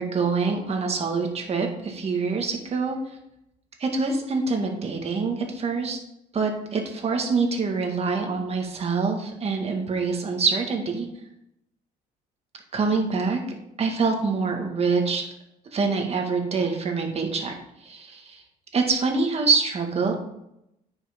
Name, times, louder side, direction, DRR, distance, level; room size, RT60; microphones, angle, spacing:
voice 1, 0.0-3.0 3.8-6.0 6.3-11.1 12.7-13.4 13.8-15.3 15.7-17.5 17.8-18.4 18.7-20.1, right 4 dB, 40° right, 2 dB, 1.8 m, -25 dB
9.4 x 5.7 x 3.7 m, 0.81 s
cardioid pair, 110°, 17 cm